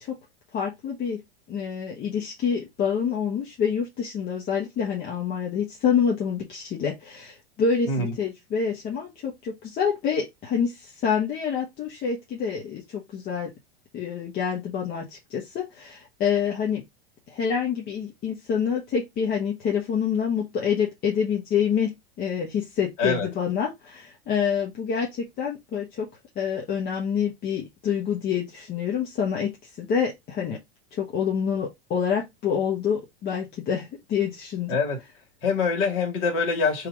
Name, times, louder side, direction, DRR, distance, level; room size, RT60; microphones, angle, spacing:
voice 1, 0.5-1.2 1.5-13.5 13.9-16.8 17.3-26.1 26.3-30.6 30.9-34.8, left 7 dB, 30° left, 1.1 m, -27 dB
voice 2, 35.4-36.9, left 4 dB, 45° left, 2.2 m, -24 dB
3.3 x 2.9 x 4.7 m
supercardioid pair, 135°, 31 cm